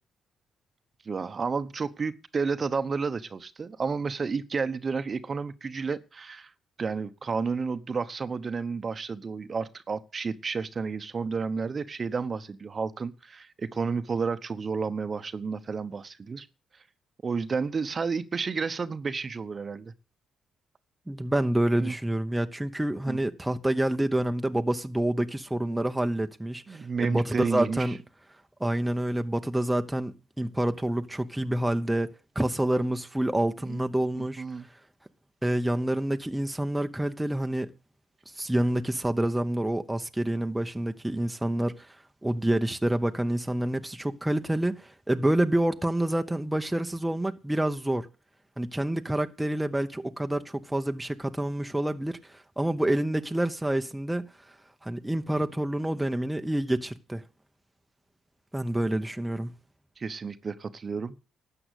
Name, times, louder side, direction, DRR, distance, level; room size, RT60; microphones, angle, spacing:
voice 1, 1.0-6.5 6.8-16.5 17.2-19.9 21.8-21.9 23.1-23.2 26.7-28.0 33.6-33.8 34.1-34.7 60.0-61.2, right 5 dB, 35° right, 1.0 m, -31 dB
voice 2, 21.1-28.0 28.6-32.1 32.3-34.4 35.4-37.7 38.3-41.9 42.2-48.1 48.6-54.2 54.8-57.2 58.5-59.5, right 1 dB, 10° right, 0.9 m, -28 dB
12.5 x 7.9 x 8.2 m
cardioid pair, 90°, 0 cm